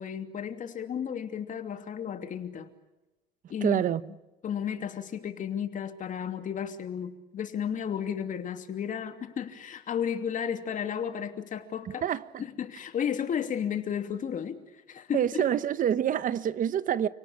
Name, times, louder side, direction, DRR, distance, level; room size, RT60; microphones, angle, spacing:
voice 1, 0.0-2.7 3.5-3.8 4.4-12.0 12.4-14.6 14.9-15.4, left 8 dB, 50° left, 2.9 m, -33 dB
voice 2, 3.6-4.0 12.0-12.4 15.1-17.1, right 10 dB, 50° right, 1.0 m, -27 dB
30.0 x 18.5 x 8.6 m
cardioid pair, 110°, 17 cm